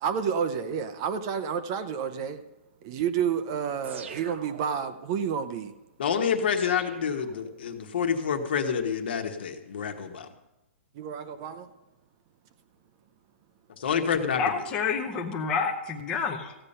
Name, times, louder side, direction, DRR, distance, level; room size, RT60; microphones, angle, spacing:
voice 1, 0.0-2.4 2.8-5.7 11.0-11.7, right 7 dB, 25° right, 10 dB, 0.5 m, -30 dB
sound 1, 3.8-5.1 6.6-7.9, right 5 dB, 80° right, 1.2 m, -45 dB
voice 2, 6.0-10.3 13.8-14.5, left 7 dB, 55° left, 6 dB, 1.3 m, -28 dB
voice 3, 14.4-16.5, left 5 dB, 15° left, 1 dB, 0.7 m, -28 dB
15.0 x 8.7 x 5.5 m, 0.97 s
hypercardioid pair, 170°, 7 cm